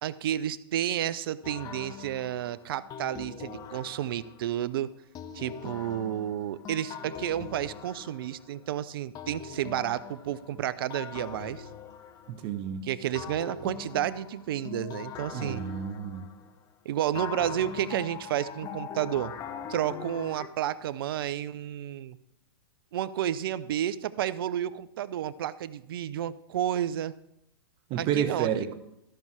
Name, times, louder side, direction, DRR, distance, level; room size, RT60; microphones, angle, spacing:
voice 1, 0.0-4.9 5.3-11.7 12.8-15.6 16.9-19.3 19.7-22.2 22.9-27.1 28.0-28.5, right 11 dB, 65° right, 17 dB, 0.5 m, -31 dB
sound 1, 1.4-4.5 5.1-8.7 9.1-12.7 13.1-16.6 17.1-20.5, left 7 dB, 30° left, 0.8 m, -42 dB
voice 2, 12.3-12.8 15.3-16.2 27.9-28.7, right 8 dB, 40° right, 9 dB, 1.0 m, -30 dB
13.5 x 5.5 x 4.7 m, 0.81 s
hypercardioid pair, 115°, 13 cm